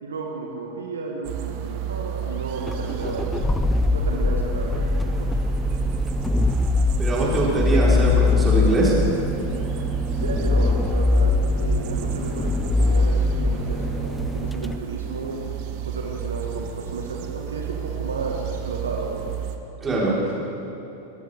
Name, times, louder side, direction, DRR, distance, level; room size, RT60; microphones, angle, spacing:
voice 1, 0.0-3.4 3.9-5.4 9.7-9.9 10.2-19.2, right 3 dB, 70° right, 0 dB, 1.7 m, -33 dB
sound 1, 1.2-19.6, right 9 dB, 45° right, 1.1 m, -32 dB
sound 2, 2.6-14.8, left 3 dB, 10° left, 0.5 m, -22 dB
voice 2, 7.0-8.9 19.8-20.1, right 2 dB, 20° right, -5 dB, 4.4 m, -22 dB
22.0 x 15.0 x 3.6 m, 2.9 s
figure-of-eight pair, 90°, 0 cm